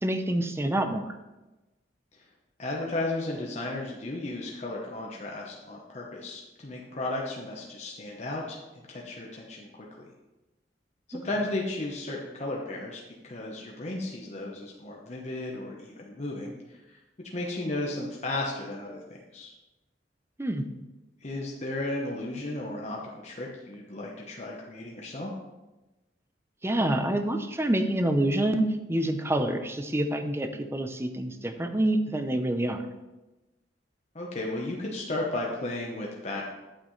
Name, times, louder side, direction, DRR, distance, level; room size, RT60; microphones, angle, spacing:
voice 1, 0.0-1.1 20.4-20.7 26.6-32.8, right 1 dB, 15° right, 7 dB, 0.6 m, -27 dB
voice 2, 2.6-10.1 11.1-17.0 17.3-19.5 21.2-25.3 34.1-36.5, left 2 dB, 40° left, -2 dB, 1.0 m, -34 dB
8.9 x 7.9 x 3.2 m, 1.1 s
head